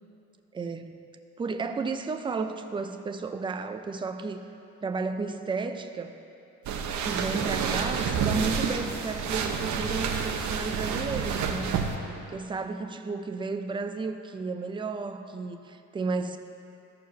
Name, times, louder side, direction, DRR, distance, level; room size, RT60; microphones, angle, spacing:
voice 1, 0.5-1.0 1.4-4.5 4.8-6.2 7.0-11.8 12.3-16.4, right 4 dB, 15° right, 8 dB, 0.4 m, -33 dB
sound 1, 6.6-12.0, right 6 dB, 60° right, 0.9 m, -29 dB
14.0 x 4.8 x 6.1 m, 2.8 s
cardioid pair, 150°, 34 cm